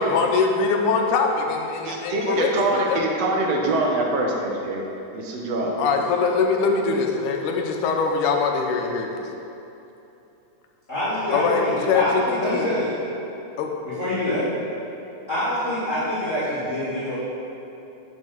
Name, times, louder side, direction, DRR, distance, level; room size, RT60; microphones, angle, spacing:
voice 1, 0.0-3.0 5.8-9.2 11.3-12.7 13.6-13.7 14.4-14.5, left 5 dB, 85° left, 2 dB, 2.2 m, -23 dB
voice 2, 1.8-4.8 5.1-6.1, right 2 dB, 70° right, 0 dB, 1.8 m, -24 dB
voice 3, 10.9-12.9 13.8-14.5 15.3-17.2, equal, 30° left, -13 dB, 1.8 m, -25 dB
7.5 x 5.1 x 6.3 m, 2.9 s
omnidirectional pair, 3.5 m